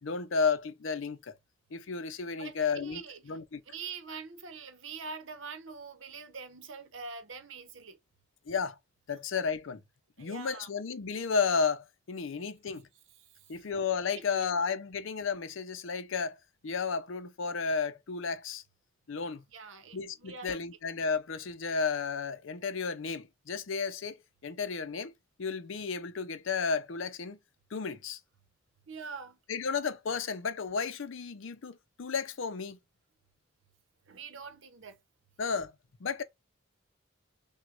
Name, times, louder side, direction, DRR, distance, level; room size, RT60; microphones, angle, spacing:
voice 1, 0.0-1.3 1.7-3.6 8.5-8.8 9.1-9.8 10.2-12.9 13.5-16.4 16.6-18.6 19.1-19.4 19.9-25.1 25.4-27.4 27.7-28.2 29.5-32.8 35.4-35.7 36.0-36.2, left 5 dB, 70° left, 0.5 m, -33 dB
voice 2, 2.3-3.4 3.7-8.0 10.2-10.7 13.3-13.5 14.3-14.5 19.5-20.6 28.9-29.4 34.1-35.0, right 5 dB, 70° right, 0.9 m, -44 dB
6.0 x 2.2 x 2.5 m
head